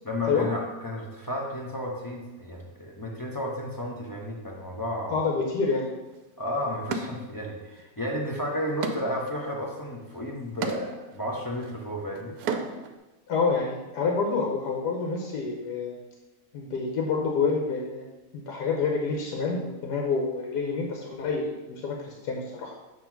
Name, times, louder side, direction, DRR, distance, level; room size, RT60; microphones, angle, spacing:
voice 1, 0.0-5.2 6.4-12.4, left 1 dB, 25° left, -2 dB, 0.4 m, -32 dB
voice 2, 5.1-5.9 13.3-16.0 16.5-18.1 18.3-22.7, left 4 dB, 90° left, 0 dB, 1.5 m, -28 dB
sound 1, 6.1-6.2 6.9-7.8 8.2-13.0, right 4 dB, 75° right, 1.1 m, -36 dB
7.4 x 3.0 x 5.9 m, 1.1 s
omnidirectional pair, 1.7 m